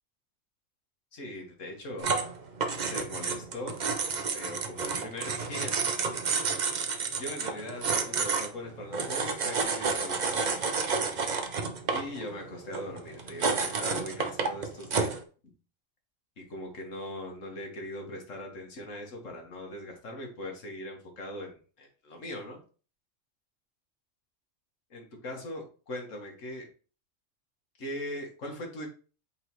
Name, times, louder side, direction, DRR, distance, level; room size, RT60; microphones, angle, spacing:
voice 1, 1.1-2.3 2.9-3.8 4.3-5.8 7.2-10.6 11.9-15.2 16.4-22.6 24.9-26.7 27.8-28.9, left 1 dB, 70° left, 2 dB, 1.8 m, -40 dB
sound 1, 2.0-15.2, right 4 dB, 45° right, 0.7 m, -30 dB
7.9 x 4.1 x 3.1 m, 0.38 s
omnidirectional pair, 1.3 m